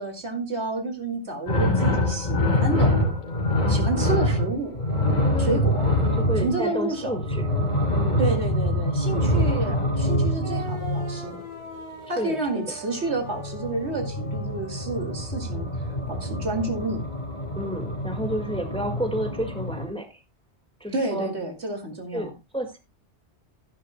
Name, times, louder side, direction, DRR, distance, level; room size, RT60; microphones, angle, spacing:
voice 1, 0.0-3.0 3.7-4.7 5.4-6.0 6.4-7.2 8.2-11.4 12.1-15.7 16.1-17.0 20.9-22.3, right 2 dB, 75° right, 3 dB, 2.7 m, -30 dB
sound 1, 1.5-11.4 13.0-19.9, left 1 dB, 45° left, 3.7 m, -25 dB
voice 2, 5.2-5.8 6.2-7.5 7.9-8.3 12.0-12.6 17.5-20.2 20.8-21.3 22.1-22.8, equal, 5° left, 5 dB, 1.8 m, -31 dB
sound 2, 10.4-16.1, right 1 dB, 25° left, 3.6 m, -41 dB
14.0 x 11.0 x 2.2 m, 0.24 s
omnidirectional pair, 1.1 m